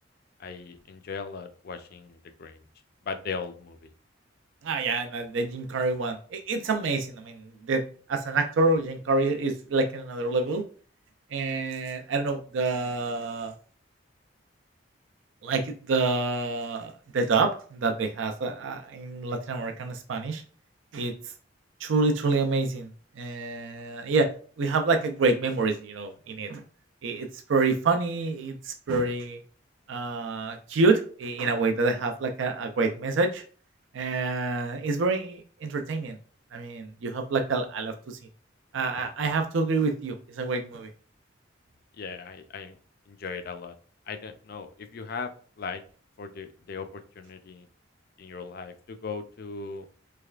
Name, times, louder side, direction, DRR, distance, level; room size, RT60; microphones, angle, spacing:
voice 1, 0.4-2.6 3.0-3.9 42.0-42.8 43.1-43.7 44.1-45.8 46.2-47.7 48.2-49.9, left 5 dB, 50° left, 8 dB, 0.4 m, -38 dB
voice 2, 4.6-7.8 8.1-10.6 11.3-13.5 15.4-20.4 20.9-21.1 21.8-22.9 23.2-24.3 24.6-26.6 27.0-29.4 29.9-33.4 33.9-36.2 36.5-38.2 38.7-40.9, right 3 dB, 80° right, 5 dB, 0.4 m, -27 dB
3.3 x 3.1 x 2.3 m, 0.42 s
head